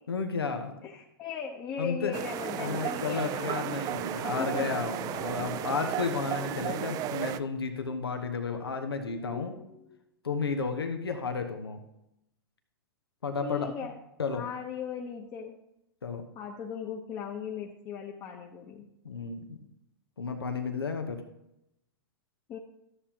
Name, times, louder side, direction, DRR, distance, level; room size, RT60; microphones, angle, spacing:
voice 1, 0.1-0.7 1.8-2.1 2.5-9.5 10.2-11.8 13.2-13.7 14.2-14.5 16.0-16.2 19.0-19.6 20.2-21.2, left 5 dB, 90° left, 6 dB, 1.0 m, -32 dB
voice 2, 0.8-3.6 4.1-4.8 9.1-10.0 13.4-13.9 14.3-15.6 16.3-18.8 22.5-22.6, left 7 dB, 35° left, -1 dB, 1.0 m, -38 dB
sound 1, 2.1-7.4, right 12 dB, 30° right, 0.4 m, -34 dB
12.5 x 7.1 x 2.9 m, 0.84 s
hypercardioid pair, 110°, 12 cm